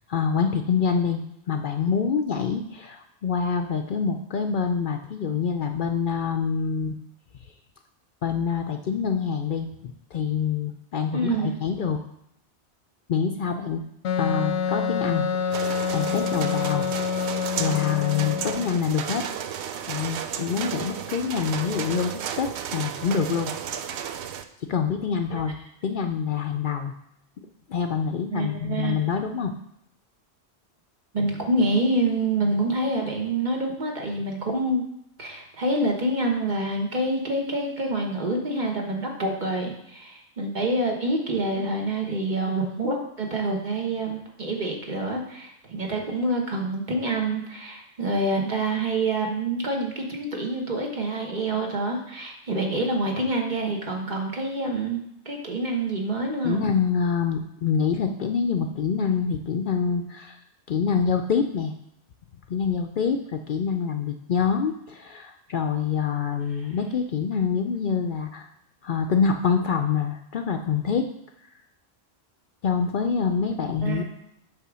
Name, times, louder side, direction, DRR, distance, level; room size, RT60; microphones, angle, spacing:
voice 1, 0.1-7.0 8.2-12.0 13.1-13.8 14.2-16.8 17.1-19.2 19.9-23.5 23.8-23.9 24.7-26.9 27.7-29.5 56.4-60.4 60.7-61.7 62.5-68.5 68.8-71.0 72.6-74.0, left 6 dB, 60° left, 5 dB, 0.6 m, -26 dB
voice 2, 11.1-11.6 25.3-25.4 28.3-29.0 31.1-34.8 35.2-55.0 55.2-56.6 73.8-74.0, right 2 dB, 45° right, 0 dB, 1.3 m, -27 dB
Wind instrument woodwind instrument, 14.0-18.7, left 7 dB, 85° left, 0.9 m, -27 dB
sound 1, 15.5-24.4, right 8 dB, 80° right, 0.9 m, -33 dB
8.4 x 3.6 x 6.1 m, 0.79 s
omnidirectional pair, 1.1 m